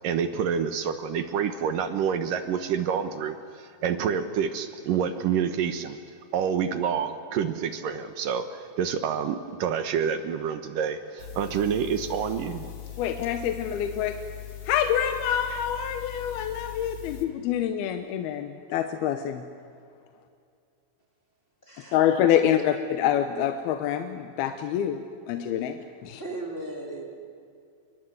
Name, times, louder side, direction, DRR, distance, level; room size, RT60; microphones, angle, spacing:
voice 1, 0.0-3.4 3.8-6.0 6.3-12.7, right 7 dB, 65° right, 10 dB, 2.4 m, -27 dB
sound 1, 11.2-17.3, left 13 dB, 45° left, 2.4 m, -40 dB
voice 2, 13.0-14.2 14.7-19.4 21.9-26.2, left 10 dB, 75° left, 8 dB, 2.8 m, -26 dB
voice 3, 21.6-22.0 22.3-22.6 26.2-27.0, right 2 dB, 15° left, 0 dB, 2.9 m, -37 dB
28.5 x 23.5 x 8.1 m, 2.5 s
omnidirectional pair, 4.7 m